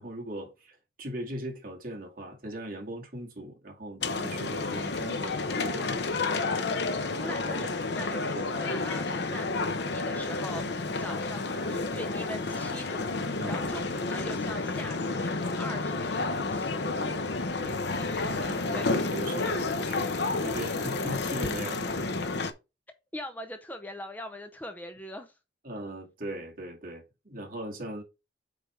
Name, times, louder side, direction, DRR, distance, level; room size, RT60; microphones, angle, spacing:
voice 1, 0.0-6.9 7.2-7.7 8.3-8.6 13.4-13.8 16.8-17.3 17.6-17.9 18.2-22.3 25.6-28.0, right 1 dB, 50° right, 2.2 m, -40 dB
sound 1, 4.0-22.5, left 3 dB, 75° left, 0.8 m, -30 dB
voice 2, 7.2-16.7 18.0-18.2 18.7-18.9 23.1-25.3, left 1 dB, 10° left, 0.7 m, -42 dB
8.4 x 3.5 x 4.4 m
head